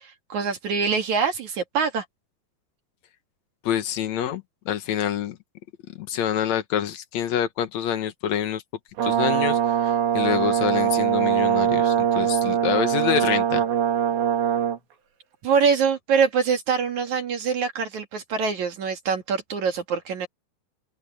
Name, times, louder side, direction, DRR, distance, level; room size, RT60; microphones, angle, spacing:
voice 1, 0.0-2.0 15.4-20.3, right 6 dB, 50° right, 2.6 m, -24 dB
voice 2, 3.6-5.4 6.0-8.6 9.0-13.6, left 9 dB, 85° left, 1.5 m, -26 dB
Brass instrument, 9.0-14.8, right 10 dB, 75° right, 5.4 m, -22 dB
open air
omnidirectional pair, 5.1 m